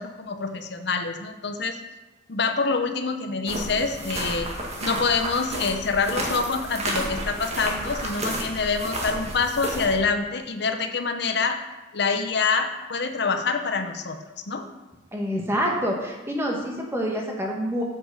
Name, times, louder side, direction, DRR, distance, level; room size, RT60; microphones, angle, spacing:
voice 1, 0.0-1.8 2.3-4.5 4.8-11.6 11.9-14.6, left 4 dB, 60° left, 7 dB, 0.8 m, -26 dB
sound 1, 3.5-9.9, right 1 dB, 35° right, 1.7 m, -31 dB
voice 2, 15.1-17.8, equal, 15° right, 0 dB, 1.4 m, -27 dB
7.8 x 6.0 x 6.6 m, 1.1 s
head